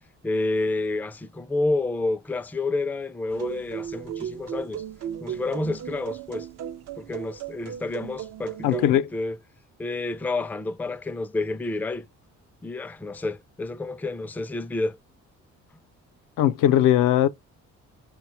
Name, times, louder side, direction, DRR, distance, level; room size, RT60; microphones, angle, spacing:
voice 1, 0.2-4.8 5.2-6.5 7.0-9.4 9.8-12.1 12.6-15.0, left 2 dB, 5° left, 0.3 m, -29 dB
sound 1, 3.3-8.9, right 9 dB, 60° right, 0.4 m, -36 dB
voice 2, 8.6-9.1 16.4-17.3, left 11 dB, 85° left, 0.5 m, -19 dB
4.0 x 2.2 x 4.2 m
cardioid pair, 90°, 30 cm